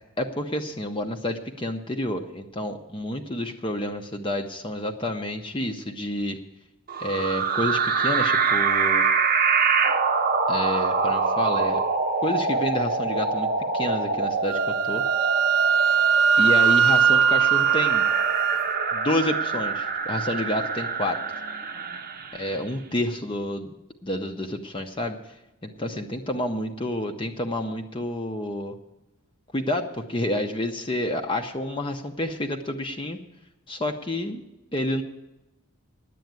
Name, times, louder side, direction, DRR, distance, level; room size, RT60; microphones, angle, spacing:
voice 1, 0.2-6.4 7.0-9.1 10.5-11.8 12.2-13.5 13.7-15.0 16.4-18.1 18.9-21.2 22.3-23.8 24.0-25.3 25.6-28.8 29.5-33.2 33.7-34.4 34.7-35.0, left 1 dB, 25° left, 4 dB, 0.7 m, -29 dB
sound 1, 6.9-22.6, right 4 dB, 40° right, 0.8 m, -25 dB
Wind instrument woodwind instrument, 14.5-18.7, right 7 dB, 75° right, 0.5 m, -20 dB
10.5 x 8.4 x 9.2 m, 0.94 s
head